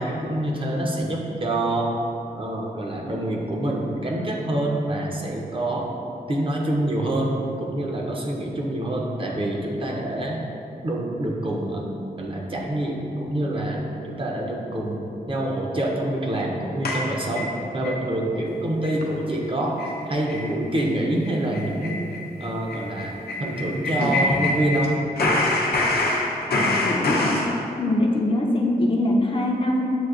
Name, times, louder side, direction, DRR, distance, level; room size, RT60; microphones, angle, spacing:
voice 1, 0.0-1.9 2.3-5.9 6.3-10.4 10.8-11.9 12.2-19.8 20.1-22.1 22.4-25.0, right 1 dB, 35° right, -2 dB, 0.5 m, -26 dB
sound 1, 16.8-18.0 18.4-18.5 18.8-19.0 19.3-19.4 19.8-20.0 20.3-20.5 20.7-20.9 21.2-24.9 25.2-27.5, left 2 dB, 80° left, 0.6 m, -25 dB
voice 2, 26.5-27.4 27.8-30.0, left 1 dB, 35° left, -1 dB, 0.4 m, -23 dB
7.6 x 2.6 x 2.4 m, 2.7 s
wide cardioid pair, 150°, 16 cm